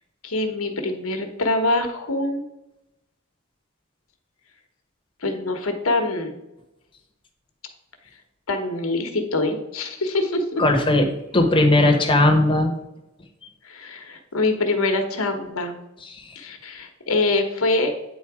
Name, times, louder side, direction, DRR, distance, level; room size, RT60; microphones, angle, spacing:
voice 1, 0.2-2.4 5.2-6.4 8.5-10.6 13.6-15.7 16.3-17.9, left 2 dB, 75° left, 6 dB, 1.1 m, -24 dB
voice 2, 10.6-11.1 11.3-12.7 16.0-16.2, left 2 dB, 25° left, 4 dB, 1.0 m, -18 dB
8.8 x 4.0 x 4.8 m, 0.91 s
head